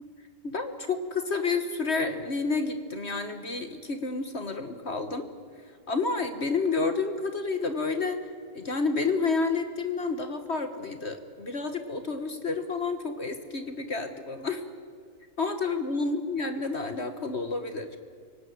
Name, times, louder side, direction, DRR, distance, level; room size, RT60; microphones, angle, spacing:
voice 1, 0.4-5.3 5.9-8.2 8.5-14.6 15.4-17.9, left 4 dB, 45° left, 8 dB, 1.6 m, -30 dB
25.0 x 17.5 x 9.4 m, 2.1 s
omnidirectional pair, 1.7 m